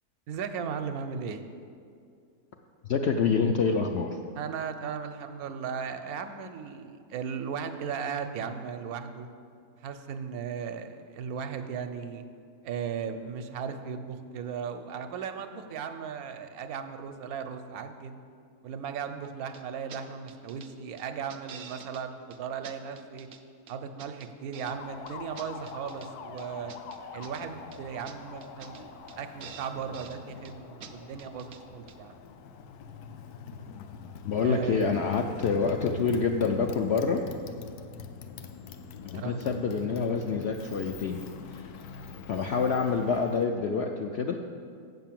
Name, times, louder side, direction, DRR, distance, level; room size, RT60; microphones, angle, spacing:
voice 1, 0.3-1.5 4.4-9.3 9.8-12.2 12.6-18.2 18.6-23.3 23.7-26.7 27.1-32.2 34.4-34.8 39.1-39.4, right 7 dB, 75° right, 8 dB, 1.1 m, -36 dB
voice 2, 2.8-4.2 34.2-37.2 39.0-41.2 41.5-41.7 42.3-44.4, left 5 dB, 70° left, 3 dB, 0.6 m, -27 dB
sound 1, 19.5-19.6 19.9-20.0 20.3-20.7 21.0-22.0 22.3-22.4 22.6-23.4 23.7-24.8 25.1-26.1 26.4-27.4 27.7-27.8 28.0-28.2 28.4-28.8 29.1-29.2 29.4-30.2 30.4-30.5 30.8-30.9 31.2-31.6 31.9-32.0, right 7 dB, 60° right, 0.6 m, -47 dB
Motorcycle, 24.5-43.5, left 6 dB, 85° left, 1.1 m, -44 dB
7.6 x 5.8 x 7.4 m, 2.3 s
omnidirectional pair, 1.6 m